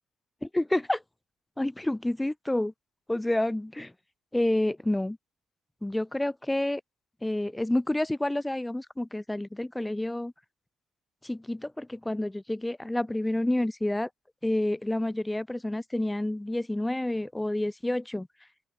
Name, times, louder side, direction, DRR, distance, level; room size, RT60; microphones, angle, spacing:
voice 1, 0.4-1.0 1.6-2.7 3.1-3.9 4.3-5.2 5.8-6.8 7.2-10.3 11.2-14.1 14.4-18.3, left 1 dB, 10° left, 0.4 m, -29 dB
open air
cardioid pair, 90°, 0 cm